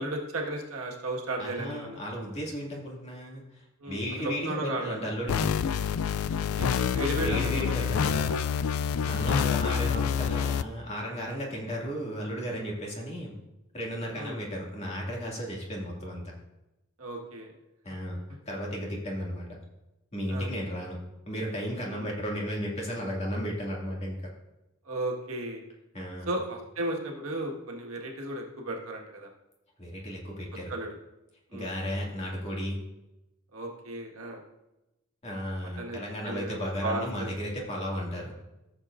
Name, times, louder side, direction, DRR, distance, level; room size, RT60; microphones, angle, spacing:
voice 1, 0.0-2.0 3.8-5.1 6.4-7.7 8.0-8.5 9.2-9.9 14.1-14.4 17.0-17.5 20.3-20.5 21.9-22.1 24.9-25.6 26.3-29.3 30.7-31.0 31.5-31.7 33.5-34.4 35.8-36.0 36.2-37.3, right 1 dB, 85° right, 0 dB, 1.7 m, -35 dB
voice 2, 1.4-5.5 7.2-8.2 9.0-13.4 13.7-16.2 17.8-19.6 20.1-21.0 21.3-24.3 25.9-26.3 29.8-30.7 31.5-32.8 35.2-38.3, equal, 30° left, -2 dB, 2.3 m, -34 dB
sound 1, 5.3-10.6, left 7 dB, 80° left, 0.4 m, -27 dB
14.5 x 7.3 x 2.6 m, 0.95 s
head